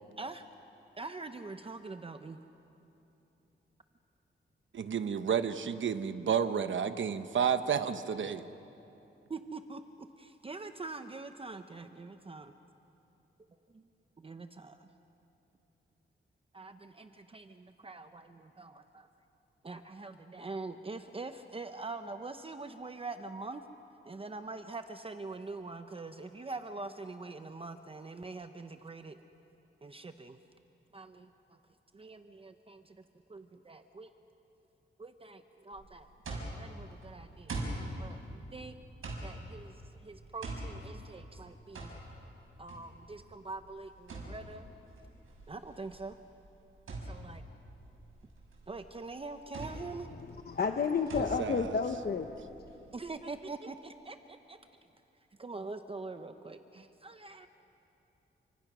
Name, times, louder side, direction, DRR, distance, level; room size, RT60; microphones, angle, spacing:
voice 1, 1.0-2.4 9.3-9.8 10.2-12.5 13.7-13.8 14.2-14.9 16.5-19.1 19.6-23.6 24.1-29.2 29.8-30.4 30.9-31.3 31.9-33.0 33.3-34.1 35.0-37.6 38.0-38.7 39.2-41.9 42.6-44.7 45.5-46.2 47.0-47.4 48.7-50.1 50.7-50.8 52.9-54.6 55.4-57.5, right 3 dB, 25° right, 8 dB, 0.8 m, -44 dB
voice 2, 4.7-8.4 51.4-51.8, right 7 dB, 65° right, 10 dB, 1.0 m, -31 dB
sound 1, 35.7-53.0, right 2 dB, 85° right, 6.1 m, -44 dB
voice 3, 50.2-52.3, left 5 dB, 50° left, 5 dB, 0.9 m, -31 dB
29.5 x 25.0 x 6.2 m, 3.0 s
wide cardioid pair, 155°, 21 cm